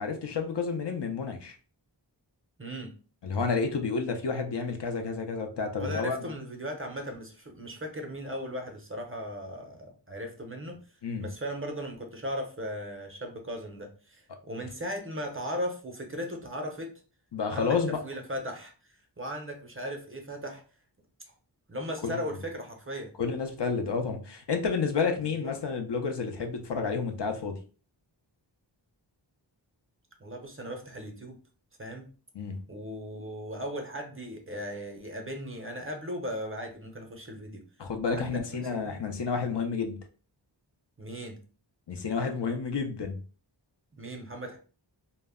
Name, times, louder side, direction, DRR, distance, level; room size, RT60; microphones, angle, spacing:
voice 1, 0.0-1.5 3.2-6.2 11.0-11.3 17.3-18.0 22.0-22.2 23.2-27.6 32.3-32.6 37.8-40.0 41.9-43.2, left 5 dB, 65° left, 5 dB, 0.5 m, -30 dB
voice 2, 2.6-2.9 5.8-10.8 11.2-16.9 17.5-18.7 19.2-20.6 21.7-23.1 25.4-25.6 30.2-31.4 31.8-32.1 32.7-37.6 38.1-38.9 41.0-41.4 43.9-44.6, equal, 30° right, 3 dB, 0.6 m, -37 dB
2.1 x 2.0 x 3.5 m, 0.37 s
wide cardioid pair, 40°, 46 cm